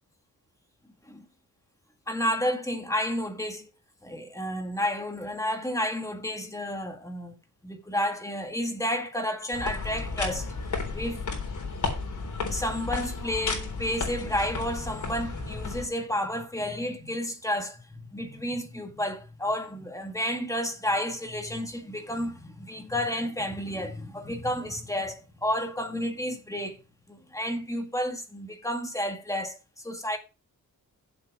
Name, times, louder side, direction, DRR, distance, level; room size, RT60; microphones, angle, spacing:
voice 1, 2.1-3.7 4.0-7.4 7.6-10.5 10.9-11.2 12.5-26.8 27.1-30.2, equal, 10° left, 1.8 m, -31 dB
sound 1, 9.5-15.9, left 4 dB, 65° left, 3.7 m, -33 dB
7.9 x 7.7 x 6.2 m
wide cardioid pair, 135°, 32 cm